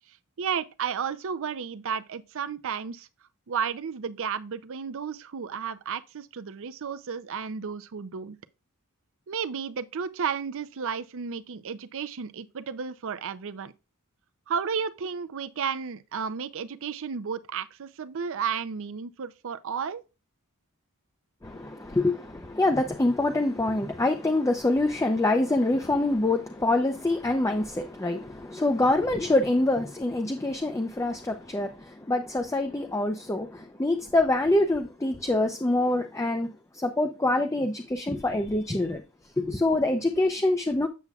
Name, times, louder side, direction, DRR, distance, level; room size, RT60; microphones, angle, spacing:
voice 1, 0.4-3.1 3.5-8.4 9.3-13.7 14.5-20.0, right 6 dB, 60° right, 0.5 m, -33 dB
voice 2, 21.4-39.0 39.4-40.9, left 2 dB, 15° left, 0.5 m, -25 dB
8.2 x 7.0 x 2.3 m
head